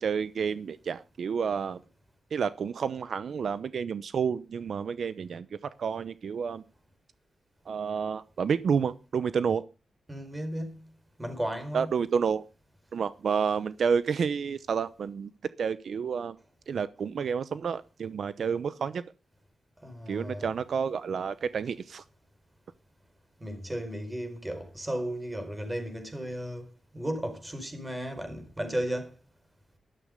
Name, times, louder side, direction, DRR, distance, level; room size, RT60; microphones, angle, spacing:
voice 1, 0.0-1.8 2.3-5.5 5.8-6.6 7.7-9.6 11.7-12.4 12.9-15.3 15.6-16.4 16.7-19.0 20.1-22.0, right 6 dB, 70° right, 0.8 m, -30 dB
voice 2, 10.1-10.9 11.2-11.9 19.8-20.5 23.4-26.7 26.9-29.2, right 1 dB, 15° right, 4.5 m, -34 dB
13.0 x 13.0 x 5.3 m
wide cardioid pair, 105°, 0 cm